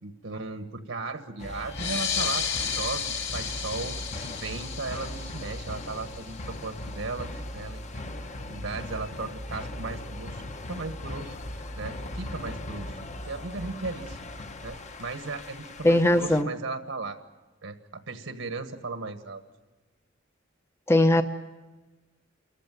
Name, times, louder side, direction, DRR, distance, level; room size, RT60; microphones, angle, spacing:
voice 1, 0.0-8.0 8.5-10.4 10.7-12.9 13.3-17.2 17.6-19.4, right 3 dB, 75° right, 1.4 m, -36 dB
sound 1, 1.4-16.4, left 1 dB, 35° left, 1.1 m, -39 dB
sound 2, 1.7-6.8, left 7 dB, 60° left, 2.1 m, -33 dB
voice 2, 15.8-16.5 20.9-21.2, left 1 dB, 15° left, 0.7 m, -19 dB
28.5 x 14.5 x 9.2 m
head